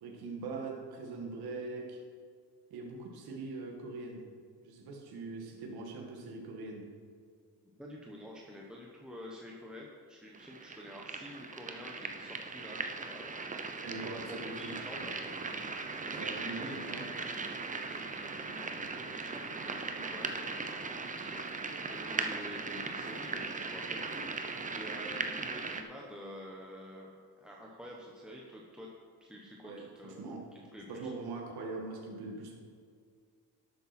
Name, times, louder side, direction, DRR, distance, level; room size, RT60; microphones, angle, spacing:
voice 1, 0.0-2.0 2.7-4.2 4.6-6.9 13.8-14.8 16.1-17.0 29.6-30.4 30.9-32.5, right 3 dB, 70° right, 0 dB, 1.9 m, -42 dB
voice 2, 7.8-15.2 15.7-17.0 17.8-21.4 21.9-24.2 24.7-28.9 29.2-31.1, equal, ahead, -3 dB, 1.2 m, -49 dB
sound 1, 10.3-25.8, right 4 dB, 20° right, 0.8 m, -39 dB
12.0 x 8.7 x 4.4 m, 2.1 s
cardioid pair, 120°, 39 cm